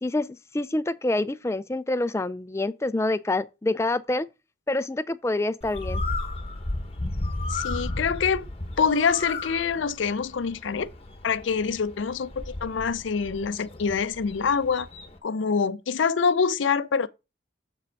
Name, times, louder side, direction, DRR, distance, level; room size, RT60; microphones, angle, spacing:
voice 1, 0.0-4.3 4.7-6.0, left 2 dB, 15° left, 0.3 m, -27 dB
Bird, 5.6-15.2, left 2 dB, 30° left, 1.0 m, -34 dB
voice 2, 7.5-8.5 8.8-10.9 11.2-14.9 15.2-17.1, left 5 dB, 75° left, 0.5 m, -25 dB
7.3 x 4.9 x 4.5 m
head